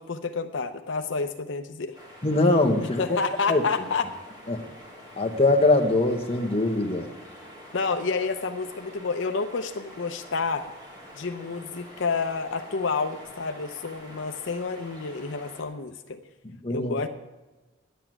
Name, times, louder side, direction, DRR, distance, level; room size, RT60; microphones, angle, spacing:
voice 1, 0.0-2.0 3.0-4.1 7.7-10.7 11.2-16.2 16.7-17.1, left 4 dB, 75° left, 7 dB, 0.7 m, -29 dB
sound 1, 1.9-15.6, equal, 20° right, 3.2 m, -47 dB
voice 2, 2.2-3.2 3.5-3.6 4.5-4.6 5.2-7.1 16.6-16.9, left 2 dB, 30° left, 4 dB, 1.2 m, -22 dB
10.5 x 8.2 x 9.1 m, 1.2 s
head